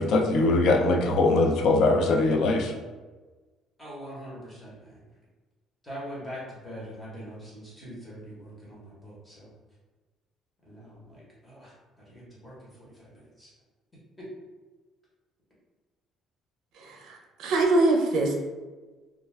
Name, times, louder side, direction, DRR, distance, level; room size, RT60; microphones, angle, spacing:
voice 1, 0.0-2.7, left 2 dB, 55° left, 3 dB, 0.3 m, -22 dB
voice 2, 3.8-5.0 5.8-9.5 10.6-11.7 12.1-13.5 14.2-14.3, equal, 10° left, -7 dB, 0.9 m, -43 dB
voice 3, 16.8-18.3, right 2 dB, 70° right, 2 dB, 0.5 m, -24 dB
2.3 x 2.2 x 3.2 m, 1.3 s
cardioid pair, 160°, 0 cm